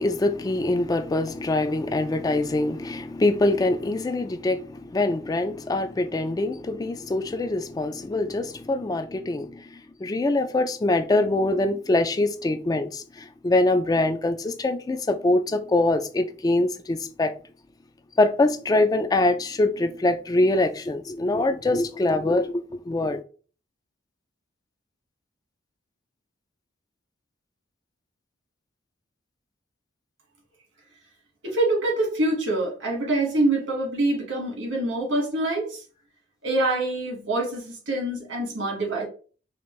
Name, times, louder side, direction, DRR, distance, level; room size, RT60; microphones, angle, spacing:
voice 1, 0.0-17.3 18.2-23.2, left 2 dB, 20° left, 0.3 m, -24 dB
voice 2, 31.4-35.8 36.4-39.1, right 2 dB, 85° right, 1.7 m, -25 dB
5.0 x 2.5 x 3.1 m
head